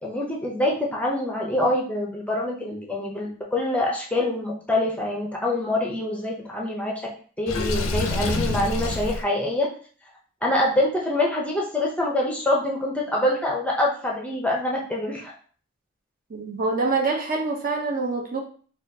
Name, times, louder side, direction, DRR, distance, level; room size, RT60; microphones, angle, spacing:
voice 1, 0.0-6.9 7.4-9.7 10.4-15.3, left 1 dB, 5° left, -2 dB, 0.5 m, -25 dB
Water / Sink (filling or washing), 7.5-9.2, left 2 dB, 90° left, 0.5 m, -26 dB
voice 2, 16.3-18.4, right 3 dB, 40° right, 2 dB, 0.5 m, -25 dB
4.1 x 2.3 x 2.6 m, 0.43 s
head